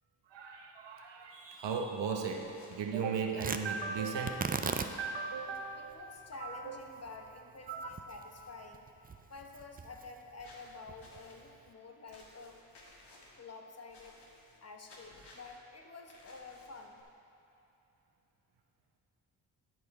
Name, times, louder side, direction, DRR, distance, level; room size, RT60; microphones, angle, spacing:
voice 1, 0.3-6.1 6.4-6.8 7.7-8.0, right 5 dB, 70° right, 3 dB, 0.9 m, -37 dB
sound 1, 2.3-2.9 10.4-11.4 12.1-13.4 13.9-14.6 14.9-15.6 16.1-17.0, left 2 dB, 60° left, 1.5 m, -58 dB
Tearing, 3.4-11.7, right 5 dB, 20° right, 0.4 m, -42 dB
voice 2, 5.7-8.9 9.3-12.6 13.4-14.2 14.6-17.0, left 3 dB, 35° left, 3 dB, 0.9 m, -49 dB
11.5 x 4.9 x 4.1 m, 2.8 s
supercardioid pair, 40°, 45 cm